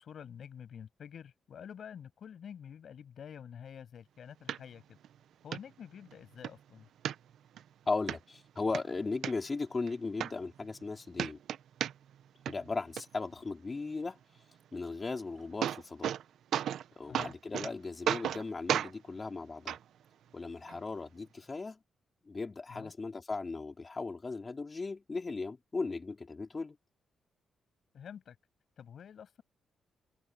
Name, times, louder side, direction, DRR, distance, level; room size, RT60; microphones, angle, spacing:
voice 1, 0.0-5.0 5.4-6.9 17.1-17.3 22.7-22.9 27.9-28.4 28.8-29.4, left 8 dB, 55° left, 7.5 m, -48 dB
sound 1, 4.5-4.6 5.0-5.1 5.5-5.6 6.1-6.5 7.0-7.6 8.1-8.2 8.6-9.3 9.9-10.0 10.2-10.9 11.1-12.2 12.5-13.0 15.0-15.1 15.4-16.2 16.5-16.9 17.1-17.7 18.1-18.4 18.7-18.9 19.7-19.8 20.7-20.8, right 10 dB, 80° right, 0.8 m, -33 dB
voice 2, 7.9-11.4 12.5-14.2 14.7-16.1 17.0-19.8 20.3-21.8 22.2-26.8, left 3 dB, 25° left, 4.5 m, -37 dB
cardioid pair, 140°, 0 cm